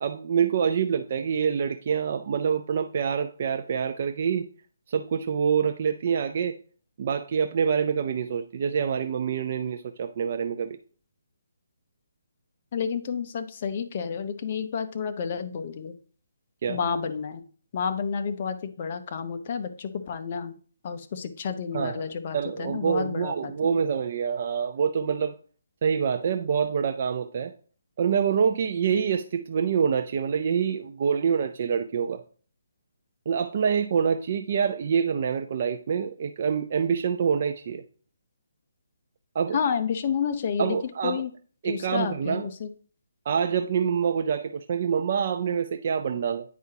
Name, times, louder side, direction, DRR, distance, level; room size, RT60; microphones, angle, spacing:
voice 1, 0.0-4.5 4.9-6.6 7.0-10.8 16.6-16.8 21.7-22.0 22.3-25.3 25.8-27.5 28.0-32.2 33.3-37.8 39.3-39.6 40.6-41.2 41.6-42.5 43.3-46.4, right 7 dB, 40° right, 6 dB, 0.4 m, -26 dB
voice 2, 12.7-16.0 16.7-17.4 17.7-20.6 20.8-23.5 39.5-40.8 41.0-41.3 41.6-42.7, left 6 dB, 35° left, 6 dB, 0.7 m, -30 dB
9.2 x 4.8 x 2.8 m, 0.42 s
hypercardioid pair, 165°, 0 cm